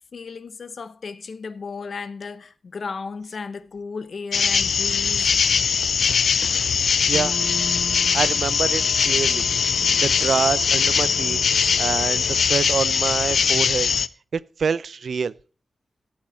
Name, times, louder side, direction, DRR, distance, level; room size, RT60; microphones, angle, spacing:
voice 1, 0.1-5.3, left 5 dB, 65° left, 0.8 m, -34 dB
sound 1, 4.3-14.1, left 6 dB, 90° left, 0.5 m, -21 dB
sound 2, 7.1-12.4, left 3 dB, 35° left, 0.9 m, -37 dB
voice 2, 8.1-9.4 10.0-11.4 11.8-13.9 14.3-15.3, right 6 dB, 75° right, 0.5 m, -26 dB
14.5 x 8.6 x 4.3 m
wide cardioid pair, 100°, 0 cm